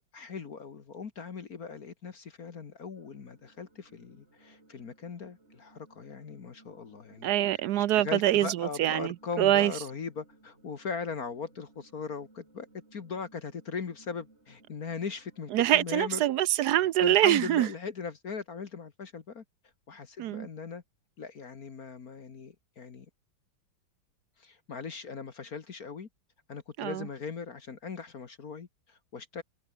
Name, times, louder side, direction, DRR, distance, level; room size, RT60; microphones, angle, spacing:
voice 1, 0.1-7.3 7.8-16.2 17.0-19.4 19.9-20.8 21.2-23.1 24.4-26.1 26.5-29.4, left 5 dB, 50° left, 1.9 m, -39 dB
sound 1, 2.9-15.5, right 2 dB, 30° right, 4.4 m, -61 dB
voice 2, 7.2-9.7 15.5-17.7 20.2-20.5 26.8-27.1, right 13 dB, 70° right, 1.0 m, -25 dB
omnidirectional pair, 2.2 m